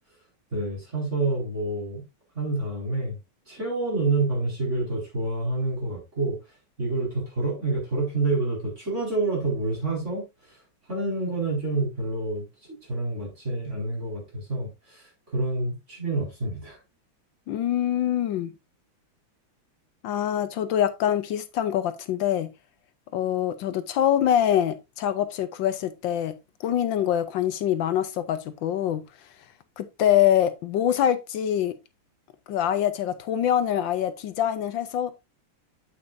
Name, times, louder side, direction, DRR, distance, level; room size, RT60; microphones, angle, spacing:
voice 1, 0.5-2.0 2.3-3.2 3.5-6.4 6.8-10.3 10.9-12.4 12.9-16.8, right 2 dB, 35° right, 5.2 m, -28 dB
voice 2, 17.5-18.5 20.0-22.5 23.1-26.3 26.6-29.0 29.8-31.7 32.5-35.1, left 10 dB, 75° left, 1.4 m, -24 dB
8.6 x 8.5 x 2.6 m
omnidirectional pair, 2.1 m